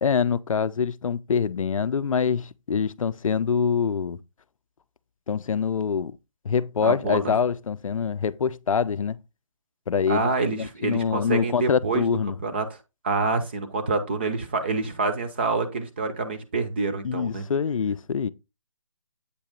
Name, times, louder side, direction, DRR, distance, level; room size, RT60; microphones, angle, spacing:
voice 1, 0.0-4.2 5.3-6.1 6.4-9.2 9.9-10.3 10.6-12.4 17.0-18.3, left 6 dB, 80° left, 0.5 m, -25 dB
voice 2, 6.8-7.3 10.1-12.1 12.4-12.7 13.0-17.4, right 3 dB, 20° right, 0.6 m, -27 dB
8.3 x 2.9 x 5.0 m
hypercardioid pair, 170°, 17 cm